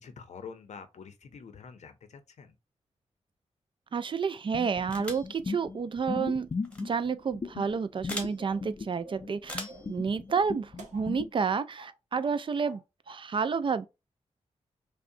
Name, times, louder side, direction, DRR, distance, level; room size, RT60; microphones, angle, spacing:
voice 1, 0.0-2.5, left 6 dB, 75° left, 0.7 m, -46 dB
voice 2, 3.9-6.5 6.8-12.8 13.1-13.9, right 5 dB, 45° right, 0.3 m, -30 dB
sound 1, 4.5-11.3, left 4 dB, 35° left, 0.5 m, -37 dB
sound 2, 4.9-5.3 6.6-6.8 8.1-8.3 9.4-9.9, left 1 dB, 10° left, 1.0 m, -39 dB
sound 3, 8.4-8.7 9.0-9.3 9.7-10.0 10.3-11.5 11.8-11.9 12.2-12.8 13.1-13.2, right 3 dB, 85° right, 0.8 m, -50 dB
5.4 x 2.1 x 2.6 m
cardioid pair, 75°, 12 cm